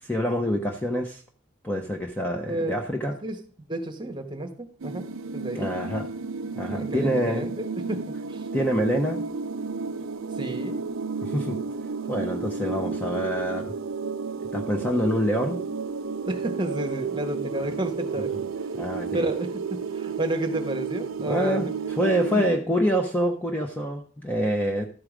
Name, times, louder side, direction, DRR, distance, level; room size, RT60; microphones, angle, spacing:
voice 1, 0.0-1.2 1.6-3.1 5.5-6.1 6.5-7.5 8.5-9.2 11.2-11.6 12.1-13.7 14.5-15.6 18.7-19.3 21.2-24.9, equal, 10° left, 2 dB, 0.7 m, -26 dB
voice 2, 2.5-2.8 3.2-3.4 3.7-5.1 5.3-5.7 6.7-8.5 10.4-10.8 16.2-18.4 19.1-21.9 22.3-22.4, right 1 dB, 20° right, 4 dB, 1.1 m, -31 dB
sound 1, 4.8-22.5, right 5 dB, 65° right, 0.5 m, -32 dB
13.0 x 4.8 x 4.9 m, 0.41 s
head